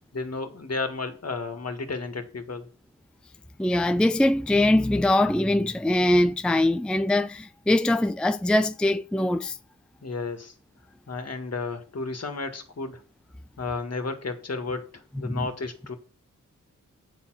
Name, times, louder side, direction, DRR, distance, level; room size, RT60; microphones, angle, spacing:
voice 1, 0.1-2.7 10.0-10.5 11.1-13.0 13.6-15.9, left 3 dB, 50° left, 1.8 m, -33 dB
voice 2, 3.6-9.6 15.2-15.5, left 1 dB, 5° left, 0.5 m, -22 dB
9.2 x 4.4 x 6.2 m
cardioid pair, 50°, 33 cm